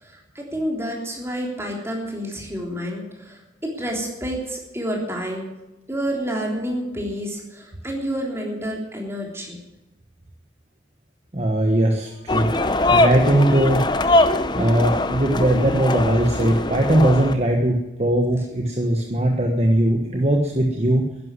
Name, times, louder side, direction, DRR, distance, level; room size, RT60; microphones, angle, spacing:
voice 1, 0.0-3.4 3.8-5.5 5.9-9.6, equal, 15° right, -1 dB, 3.4 m, -29 dB
voice 2, 11.3-12.5 12.9-13.8 14.5-21.1, right 1 dB, 35° right, 2 dB, 1.3 m, -19 dB
sound 1, 12.3-17.3, left 2 dB, 25° left, 0.7 m, -21 dB
12.0 x 11.0 x 9.7 m, 0.98 s
head